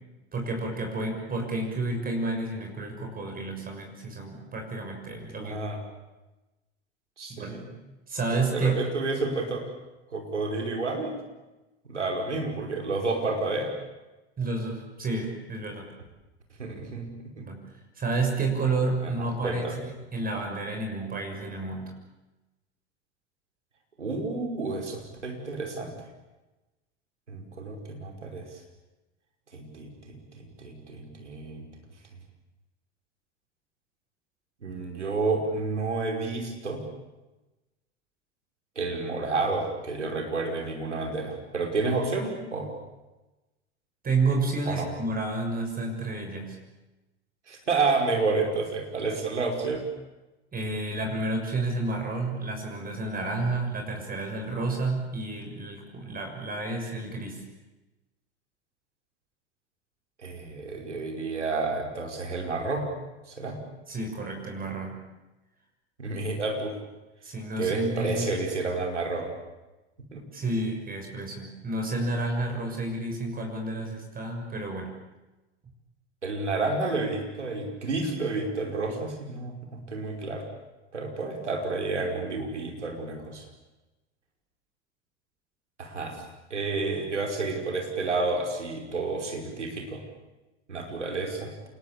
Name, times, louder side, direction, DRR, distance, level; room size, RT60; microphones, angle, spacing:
voice 1, 0.3-5.6 7.3-7.5 8.1-8.8 14.4-15.9 17.4-17.6 18.0-21.9 44.0-46.6 50.5-57.4 63.9-65.0 67.2-68.3 70.3-74.9, right 2 dB, 25° right, 3 dB, 6.4 m, -30 dB
voice 2, 5.3-5.8 7.2-7.7 8.3-9.6 10.1-11.2 11.9-13.7 16.6-17.5 19.0-19.1 19.4-19.8 24.0-25.9 27.3-28.4 29.5-31.7 34.6-36.8 38.8-42.8 44.7-44.9 47.5-49.8 60.2-62.9 63.3-63.6 66.0-66.8 67.6-69.3 70.1-70.2 76.2-80.4 80.9-83.5 85.8-86.2 86.5-90.0 90.7-91.5, right 3 dB, 90° right, 3 dB, 5.5 m, -30 dB
27.5 x 21.5 x 8.7 m, 1.1 s
hypercardioid pair, 85°, 34 cm